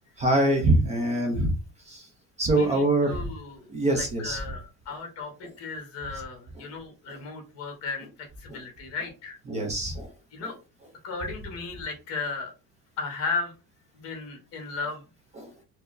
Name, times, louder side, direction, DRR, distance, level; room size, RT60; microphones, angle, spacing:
voice 1, 0.2-1.6 1.9-2.1 2.4-3.3 3.7-4.4 6.6-6.7 7.1-7.2 8.5-8.6 9.5-10.1 15.4-15.5, right 1 dB, 20° right, 3 dB, 0.3 m, -24 dB
voice 2, 2.5-9.4 10.3-10.6 11.0-12.5 13.0-13.5 13.9-15.0, left 4 dB, 40° left, 3 dB, 1.1 m, -35 dB
4.4 x 2.0 x 2.5 m, 0.30 s
cardioid pair, 180°, 37 cm